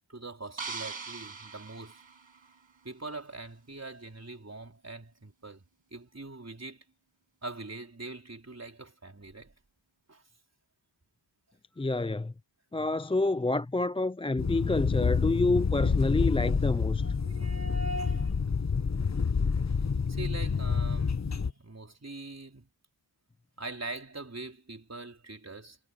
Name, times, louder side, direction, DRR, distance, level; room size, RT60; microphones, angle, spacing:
voice 1, 0.1-2.0 2.8-5.6 5.9-6.8 7.4-9.5 10.1-10.2 14.8-14.9 17.0-18.4 20.1-22.7 23.6-25.8, right 2 dB, 35° right, 4.2 m, -42 dB
sound 1, 0.6-2.9, right 4 dB, 80° right, 6.2 m, -41 dB
voice 2, 11.8-12.3 12.7-17.1, left 2 dB, 15° left, 0.4 m, -28 dB
sound 2, 14.4-21.5, left 5 dB, 35° left, 1.1 m, -28 dB
wide cardioid pair, 75°, 46 cm